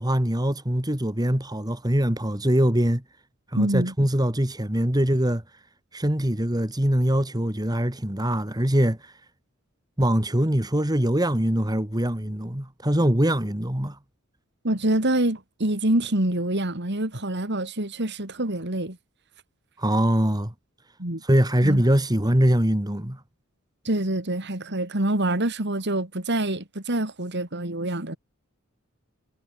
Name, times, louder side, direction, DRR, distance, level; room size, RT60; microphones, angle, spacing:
voice 1, 0.0-3.0 3.5-5.4 5.9-9.1 10.0-14.0 19.8-20.5 21.2-23.2, right 1 dB, 20° right, 2.6 m, -23 dB
voice 2, 3.6-3.9 14.6-19.0 21.0-21.2 21.6-21.8 23.9-28.2, right 1 dB, 55° right, 3.7 m, -26 dB
head